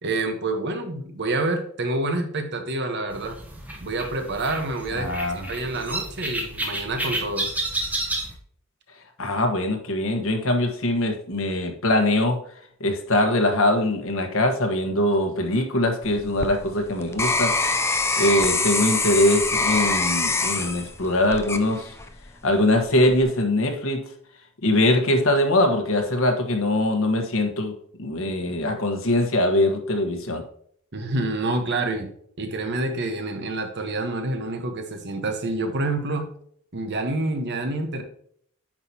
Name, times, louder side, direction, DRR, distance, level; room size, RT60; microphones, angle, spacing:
voice 1, 0.0-3.4 3.8-7.5 30.9-32.1 32.4-36.3 36.7-38.0, right 2 dB, 55° right, 5 dB, 1.2 m, -27 dB
sound 1, 3.1-8.4, right 1 dB, 5° right, 1.1 m, -31 dB
voice 2, 4.9-5.5 9.2-12.4 12.8-17.5 18.2-21.9 22.4-24.0 24.6-27.7 28.0-30.4, left 1 dB, 65° left, 4 dB, 1.4 m, -22 dB
sound 2, 16.0-22.2 22.8-23.2, left 3 dB, 10° left, 0.5 m, -25 dB
8.9 x 6.1 x 2.9 m, 0.62 s
head